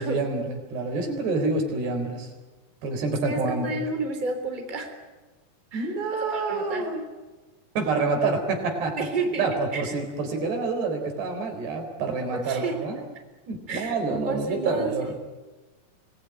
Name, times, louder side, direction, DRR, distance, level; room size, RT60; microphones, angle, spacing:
voice 1, 0.0-2.3 2.8-3.8 5.7-7.0 7.8-9.1 9.4-13.0 13.5-15.2, right 3 dB, 80° right, 4 dB, 6.0 m, -27 dB
voice 2, 3.2-5.0 5.7-5.9 6.2-6.9 9.0-9.4 9.7-9.9 12.3-12.8 13.7-14.0 14.3-15.2, right 3 dB, 10° right, 4 dB, 2.9 m, -31 dB
26.0 x 19.5 x 9.5 m, 1.2 s
omnidirectional pair, 4.7 m